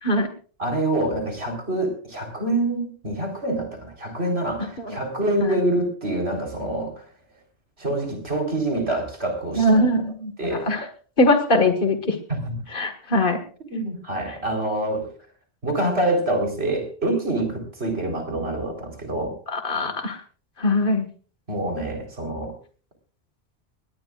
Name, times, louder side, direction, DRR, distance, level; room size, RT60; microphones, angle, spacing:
voice 1, 0.6-7.0 7.8-9.8 10.4-10.7 12.3-12.6 13.7-15.1 15.6-19.4 21.5-22.5, right 1 dB, 75° right, 3 dB, 4.4 m, -26 dB
voice 2, 9.6-10.9 11.2-12.2 12.7-13.4 19.5-20.2 20.6-21.1, left 1 dB, 55° left, 7 dB, 2.0 m, -21 dB
20.5 x 19.0 x 2.5 m, 0.41 s
omnidirectional pair, 1.1 m